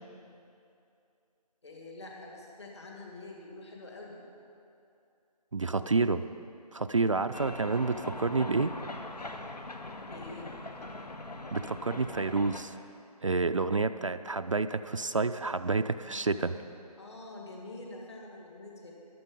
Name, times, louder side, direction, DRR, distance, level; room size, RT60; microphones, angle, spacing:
voice 1, 1.6-4.2 10.0-10.5 16.1-18.9, left 2 dB, 45° left, -1 dB, 2.4 m, -46 dB
voice 2, 5.5-6.3 6.7-8.7 11.5-12.7 13.2-16.6, right 3 dB, 50° right, 10 dB, 0.4 m, -29 dB
sound 1, 7.3-12.6, left 2 dB, 80° left, 1.2 m, -41 dB
14.0 x 11.5 x 5.3 m, 2.6 s
figure-of-eight pair, 170°, 21 cm